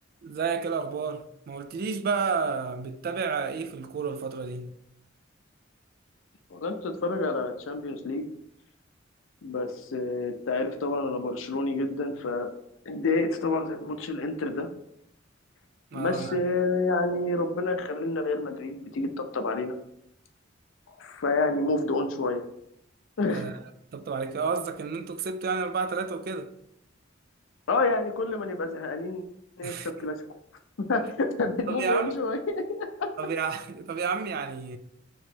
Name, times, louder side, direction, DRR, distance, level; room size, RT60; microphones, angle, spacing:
voice 1, 0.2-4.8 15.9-16.4 23.3-23.5 23.9-26.5 29.6-30.1 31.7-32.2 33.2-34.8, right 5 dB, 50° right, 0.3 m, -31 dB
voice 2, 6.5-8.3 9.4-12.5 12.9-14.7 15.9-19.7 21.0-22.4 23.2-23.5 27.7-29.2 29.6-29.7 30.0-30.2 30.8-33.1, left 3 dB, 80° left, 0.5 m, -28 dB
3.0 x 2.9 x 4.4 m
head